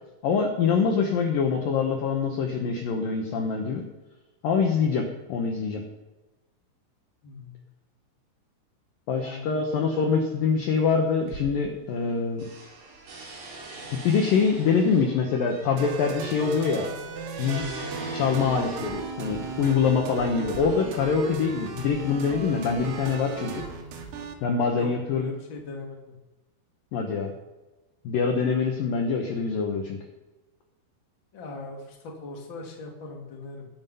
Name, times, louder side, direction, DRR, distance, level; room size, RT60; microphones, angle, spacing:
voice 1, 0.2-3.9 4.4-5.0 5.3-5.8 9.1-12.5 13.9-16.9 17.4-17.8 18.1-23.6 24.4-25.3 26.9-27.3 28.0-30.0, left 5 dB, 75° left, 2 dB, 2.0 m, -24 dB
voice 2, 9.2-10.0 10.4-10.6 24.7-24.9 25.1-26.1 31.3-33.7, left 2 dB, 40° left, 0 dB, 1.9 m, -40 dB
sound 1, 11.2-12.1 12.4-19.2 20.0-20.6, right 3 dB, 55° right, 5.4 m, -43 dB
sound 2, 15.8-24.3, right 5 dB, 85° right, 4.3 m, -36 dB
21.5 x 7.5 x 5.5 m, 1.1 s
omnidirectional pair, 5.8 m